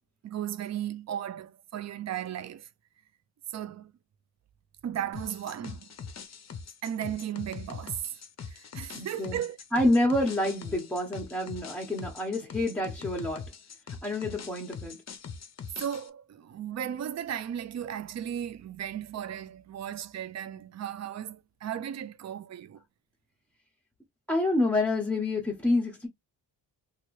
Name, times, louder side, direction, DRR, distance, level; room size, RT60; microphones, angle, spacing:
voice 1, 0.2-2.7 3.5-3.9 4.8-5.9 6.8-8.0 8.4-9.6 15.8-22.8, right 10 dB, 40° right, 0.4 m, -35 dB
sound 1, 5.1-16.1, left 6 dB, 40° left, 0.6 m, -42 dB
voice 2, 8.9-9.4 9.7-13.5 14.0-15.0 24.3-26.1, left 1 dB, 5° left, 0.9 m, -27 dB
3.0 x 2.5 x 3.0 m
cardioid pair, 90°, 43 cm